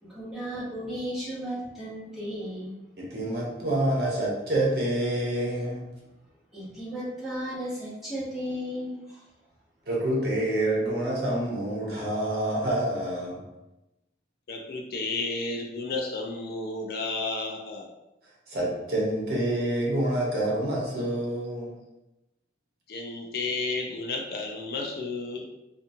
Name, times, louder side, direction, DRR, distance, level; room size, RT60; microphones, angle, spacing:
voice 1, 0.0-2.8 6.5-9.3, equal, ahead, -11 dB, 1.0 m, -35 dB
voice 2, 3.0-6.0 9.9-13.4 18.5-21.8, right 1 dB, 60° right, -4 dB, 0.8 m, -27 dB
voice 3, 14.5-17.9 22.9-25.4, left 3 dB, 55° left, 0 dB, 0.4 m, -32 dB
2.7 x 2.3 x 2.6 m, 0.96 s
head